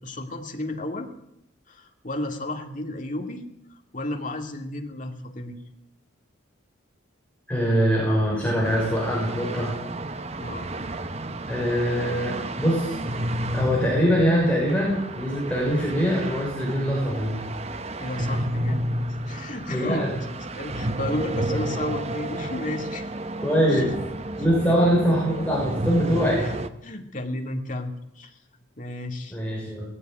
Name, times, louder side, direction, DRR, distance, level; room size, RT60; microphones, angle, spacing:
voice 1, 0.0-1.1 1.7-3.5 3.9-5.6 10.4-10.7 18.0-18.9 19.3-20.1 20.5-23.0 23.6-23.8 24.7-25.0 26.4-26.5 26.8-28.4 28.8-29.4, left 1 dB, 40° left, 4 dB, 2.5 m, -33 dB
voice 2, 7.5-9.8 11.5-13.0 13.5-17.4 19.7-20.1 23.4-23.9 24.4-26.5 29.3-29.9, equal, 5° left, -5 dB, 6.2 m, -23 dB
sound 1, 8.6-26.7, right 1 dB, 30° right, 1.0 m, -31 dB
19.0 x 15.5 x 9.3 m, 0.80 s
head